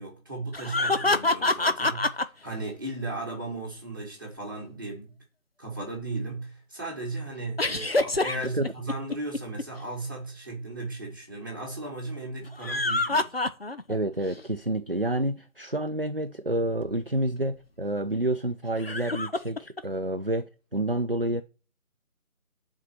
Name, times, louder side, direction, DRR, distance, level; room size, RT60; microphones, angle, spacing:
voice 1, 0.0-5.2 5.6-13.3, right 2 dB, 15° right, 1.8 m, -36 dB
sound 1, 0.5-2.2 7.6-9.6 12.4-14.0 14.4-14.5 16.8-16.9 18.8-19.8, left 2 dB, 45° left, 0.7 m, -26 dB
voice 2, 13.9-21.4, right 1 dB, 45° right, 0.5 m, -29 dB
8.3 x 4.8 x 7.4 m
figure-of-eight pair, 180°, 41 cm